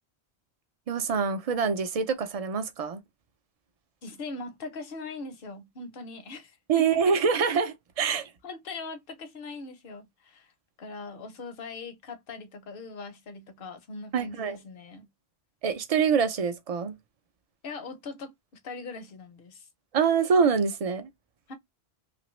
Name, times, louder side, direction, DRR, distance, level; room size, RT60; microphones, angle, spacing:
voice 1, 0.9-3.0 6.7-8.3 14.1-14.6 15.6-16.9 19.9-21.1, right 6 dB, 50° right, 0.5 m, -25 dB
voice 2, 4.0-7.0 8.1-10.5 10.8-15.1 17.6-19.7 21.5-21.6, left 3 dB, 60° left, 0.8 m, -41 dB
2.9 x 2.5 x 3.0 m
omnidirectional pair, 1.1 m